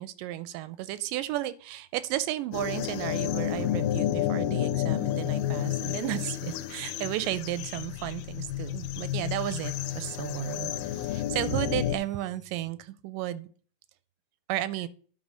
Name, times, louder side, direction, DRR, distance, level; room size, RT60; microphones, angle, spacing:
voice 1, 0.0-13.5 14.5-14.9, right 14 dB, 85° right, 15 dB, 2.2 m, -33 dB
sound 1, 2.5-12.0, left 12 dB, 90° left, 2.2 m, -31 dB
sound 2, 6.7-12.7, right 10 dB, 25° right, 0.5 m, -55 dB
10.5 x 3.8 x 5.0 m, 0.42 s
omnidirectional pair, 3.8 m